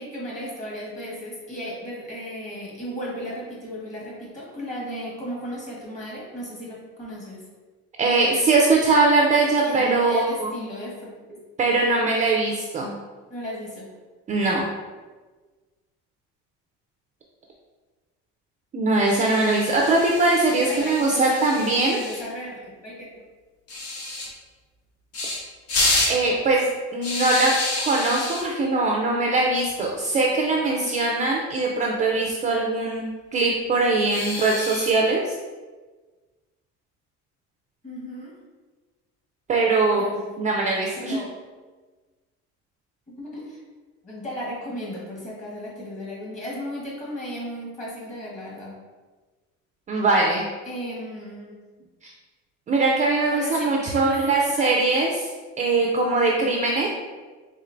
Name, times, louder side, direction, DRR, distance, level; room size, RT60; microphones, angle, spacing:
voice 1, 0.0-7.4 9.6-11.4 13.3-13.9 20.7-23.1 37.8-38.3 40.0-40.2 41.0-41.3 43.1-43.6 44.0-48.7 50.6-51.5 53.3-54.7, equal, 25° left, -5 dB, 1.4 m, -35 dB
voice 2, 8.0-10.6 11.6-12.9 14.3-14.7 18.7-22.0 26.1-27.5 27.9-35.3 39.5-40.0 40.4-41.2 49.9-50.4 52.0-52.1 52.7-55.3 55.6-56.9, right 3 dB, 25° right, -1 dB, 0.4 m, -21 dB
sound 1, 19.1-22.2 23.7-24.3 25.1-25.4 25.7-26.2 27.0-28.4 29.6-29.9 30.1-30.2 30.6-30.7 32.0-32.5 34.1-34.9, left 2 dB, 50° left, 0.9 m, -28 dB
4.3 x 3.6 x 2.5 m, 1.3 s
cardioid pair, 140°, 30 cm